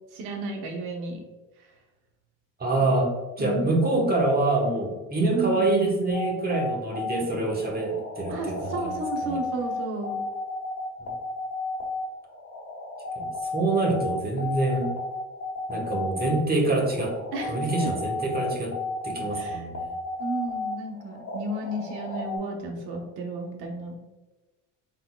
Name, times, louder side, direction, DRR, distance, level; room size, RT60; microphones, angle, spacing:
voice 1, 0.1-1.2 2.8-2.9 3.4-4.0 5.3-5.8 8.3-10.2 17.3-17.9 19.3-19.7 20.2-24.0, right 2 dB, 80° right, 2 dB, 1.1 m, -33 dB
voice 2, 2.6-3.1 3.4-9.4 11.0-11.1 13.2-14.9 15.7-17.2 17.5-18.8 19.0-19.9, right 2 dB, 25° right, -1 dB, 1.2 m, -26 dB
sound 1, 6.1-22.4, left 4 dB, 40° left, 1.4 m, -33 dB
4.1 x 3.7 x 2.3 m, 1.1 s
supercardioid pair, 85°, 37 cm